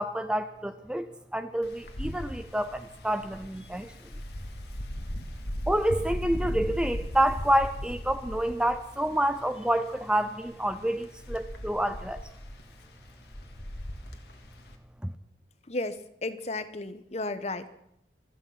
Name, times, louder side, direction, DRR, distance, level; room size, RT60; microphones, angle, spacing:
voice 1, 0.0-3.9 5.7-12.2 15.0-15.1, right 1 dB, 5° right, 10 dB, 0.6 m, -28 dB
Wind, 1.6-14.8, equal, 65° left, 2.0 m, -38 dB
voice 2, 15.7-17.7, left 2 dB, 40° left, 12 dB, 1.0 m, -34 dB
26.5 x 9.0 x 5.8 m, 0.75 s
head